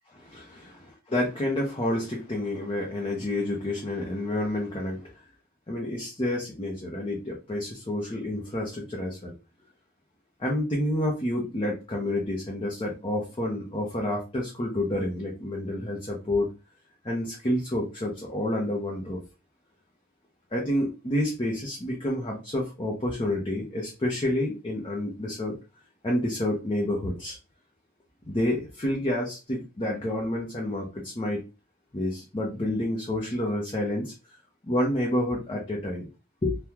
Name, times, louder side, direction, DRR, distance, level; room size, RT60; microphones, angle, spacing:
voice 1, 0.1-0.7 1.1-5.2 5.7-9.3 10.4-16.5 17.0-19.2 20.5-25.6 26.0-27.4 28.3-31.4 31.9-34.1 34.6-36.1 36.4-36.6, left 1 dB, 25° left, -2 dB, 0.7 m, -29 dB
3.6 x 2.3 x 2.9 m, 0.30 s
head